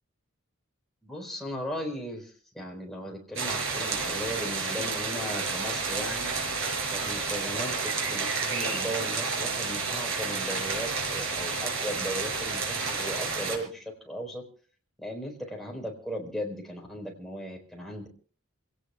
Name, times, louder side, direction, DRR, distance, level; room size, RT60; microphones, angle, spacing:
voice 1, 1.0-6.3 6.9-14.4 15.0-18.1, equal, ahead, 0 dB, 4.3 m, -37 dB
sound 1, 3.4-13.6, right 4 dB, 65° right, 6.1 m, -30 dB
28.0 x 17.5 x 2.3 m, 0.42 s
head